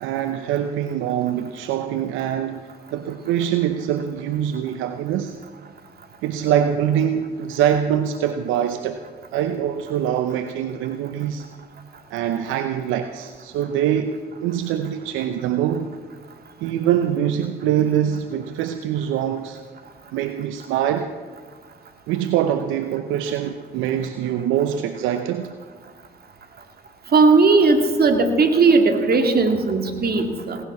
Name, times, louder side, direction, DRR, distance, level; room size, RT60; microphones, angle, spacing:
voice 1, 0.0-5.4 6.2-9.0 9.3-11.5 12.1-15.9 16.6-19.6 20.1-21.1 22.1-25.5, right 10 dB, 80° right, 0.8 m, -24 dB
voice 2, 27.1-30.6, right 4 dB, 50° right, 2.3 m, -17 dB
17.5 x 11.0 x 7.1 m
hypercardioid pair, 45°, 20 cm